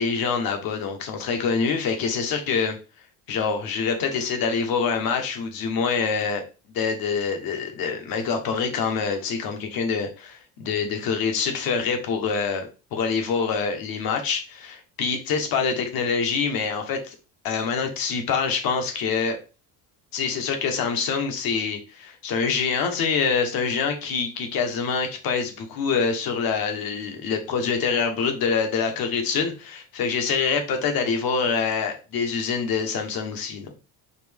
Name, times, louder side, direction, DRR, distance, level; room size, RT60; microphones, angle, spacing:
voice 1, 0.0-2.8 3.3-6.4 6.7-17.1 17.4-19.4 20.1-33.7, left 5 dB, 60° left, 5 dB, 1.2 m, -25 dB
4.3 x 3.1 x 3.4 m, 0.32 s
cardioid pair, 155°, 41 cm